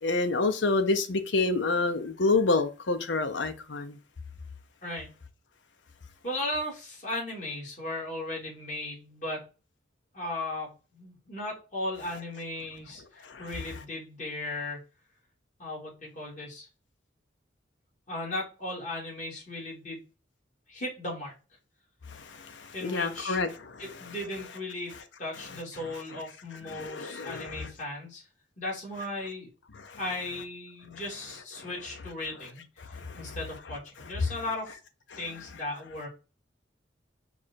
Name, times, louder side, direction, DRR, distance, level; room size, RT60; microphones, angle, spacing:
voice 1, 0.0-4.0 13.2-13.5 22.1-23.7 26.7-27.7 29.8-30.0 31.6-31.7 32.9-33.4 34.2-34.3, left 3 dB, 75° left, 0.7 m, -28 dB
voice 2, 6.2-9.5 10.1-14.8 15.6-16.7 18.1-20.0 20.7-21.3 22.7-23.4 23.8-28.2 28.6-29.5 30.0-34.8 35.2-36.1, left 1 dB, 40° left, 2.2 m, -36 dB
4.8 x 2.4 x 4.2 m
head